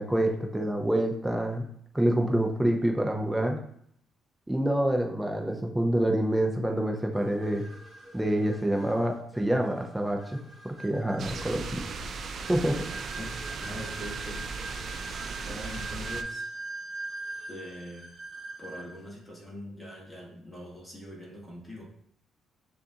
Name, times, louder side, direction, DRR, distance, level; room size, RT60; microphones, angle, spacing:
voice 1, 0.0-1.7 1.9-3.6 4.5-7.7 8.1-11.8 12.3-12.9, right 1 dB, 5° right, 2 dB, 0.6 m, -27 dB
sound 1, 7.1-19.1, right 2 dB, 25° right, 1.7 m, -42 dB
sound 2, 11.2-16.2, right 4 dB, 55° right, 0.4 m, -37 dB
voice 2, 11.7-12.2 13.2-14.7 15.4-16.4 17.5-18.1 18.6-21.9, left 1 dB, 10° left, -3 dB, 1.4 m, -43 dB
6.6 x 2.5 x 2.8 m, 0.67 s
cardioid pair, 90°, 0 cm